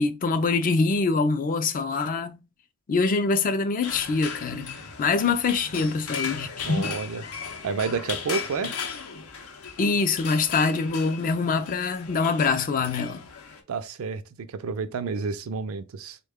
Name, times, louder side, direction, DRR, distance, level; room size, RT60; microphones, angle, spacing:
voice 1, 0.0-2.4 2.9-6.9 9.8-13.2, left 4 dB, 40° left, 0.4 m, -24 dB
sound 1, 3.8-13.6, left 6 dB, 85° left, 0.6 m, -37 dB
voice 2, 6.6-7.2 7.6-8.7 13.7-16.2, right 5 dB, 70° right, 0.4 m, -30 dB
3.5 x 2.2 x 3.4 m
head